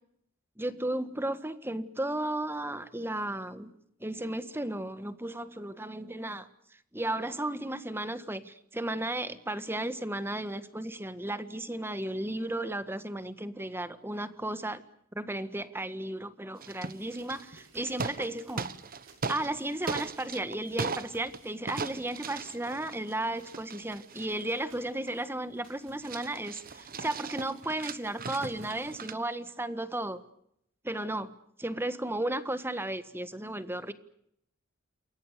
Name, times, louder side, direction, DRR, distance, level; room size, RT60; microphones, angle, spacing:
voice 1, 0.6-6.5 6.9-14.8 15.1-18.7 19.3-30.2 30.8-31.3 31.6-33.9, right 1 dB, 10° right, 12 dB, 1.6 m, -34 dB
sound 1, 16.6-17.6 17.9-19.6 19.9-21.4 21.7-25.2 25.6-25.7 26.0-29.1, right 4 dB, 45° right, 1.3 m, -38 dB
sound 2, 16.9-29.0, right 4 dB, 65° right, 6.6 m, -61 dB
29.0 x 22.0 x 6.9 m, 0.73 s
head